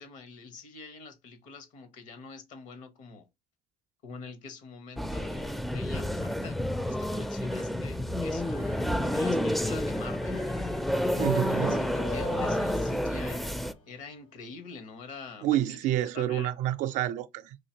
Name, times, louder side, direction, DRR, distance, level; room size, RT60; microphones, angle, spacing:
voice 1, 0.0-3.3 4.0-6.6 6.8-8.7 9.1-10.5 11.7-13.5 13.9-16.6, left 4 dB, 70° left, 0.9 m, -45 dB
sound 1, 5.0-13.7, left 1 dB, ahead, 0.4 m, -30 dB
sound 2, 8.4-14.1, left 3 dB, 85° left, 1.4 m, -42 dB
voice 2, 11.2-11.9 15.4-17.6, right 13 dB, 70° right, 0.4 m, -28 dB
3.9 x 2.7 x 2.8 m
supercardioid pair, 75°, 13 cm